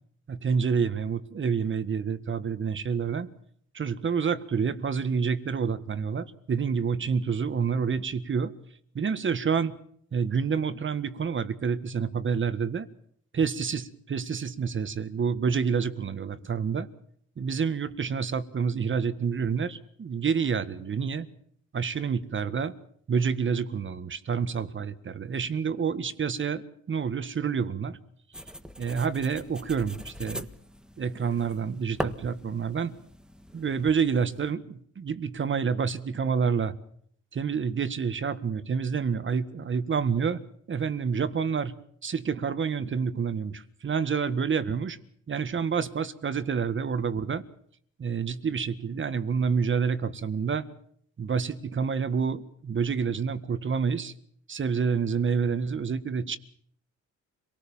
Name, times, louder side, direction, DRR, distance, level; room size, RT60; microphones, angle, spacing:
voice 1, 0.3-3.3 3.7-8.5 8.9-9.7 10.1-12.9 13.3-16.9 17.4-21.3 21.7-22.7 23.1-28.0 28.8-30.5 31.0-32.9 33.5-36.7 37.3-40.4 40.7-41.7 42.0-45.0 45.3-47.4 48.0-50.7 51.2-54.1 54.5-56.4, right 6 dB, 40° right, 13 dB, 1.7 m, -28 dB
sound 1, 28.3-34.5, equal, 5° right, 1.5 m, -41 dB
26.0 x 19.0 x 7.3 m, 0.65 s
cardioid pair, 90°, 30 cm